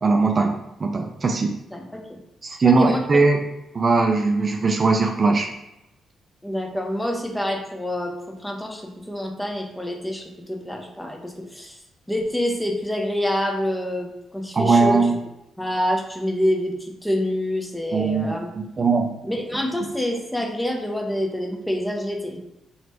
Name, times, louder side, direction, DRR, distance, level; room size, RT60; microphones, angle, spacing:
voice 1, 0.0-1.5 2.4-3.5 3.7-5.5 14.5-15.1 17.9-19.1, right 3 dB, 45° right, 3 dB, 0.4 m, -20 dB
voice 2, 1.7-2.0 2.6-3.0 6.4-11.8 12.1-15.0 15.6-18.5 19.2-22.4, left 1 dB, 10° left, 2 dB, 0.7 m, -27 dB
3.2 x 2.9 x 2.9 m, 0.91 s
hypercardioid pair, 40°, 0 cm